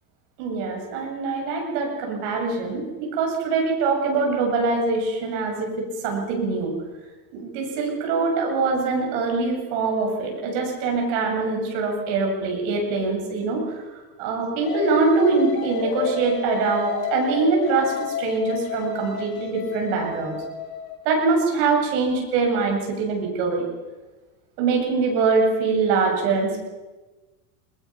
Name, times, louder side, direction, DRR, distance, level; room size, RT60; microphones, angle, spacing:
voice 1, 0.4-6.7 7.3-13.8 14.2-20.4 21.0-23.6 24.6-26.6, right 4 dB, 65° right, 2 dB, 7.3 m, -23 dB
sound 1, 14.6-21.0, left 7 dB, 85° left, 6.0 m, -31 dB
21.5 x 21.0 x 6.0 m, 1.2 s
supercardioid pair, 135°, 42 cm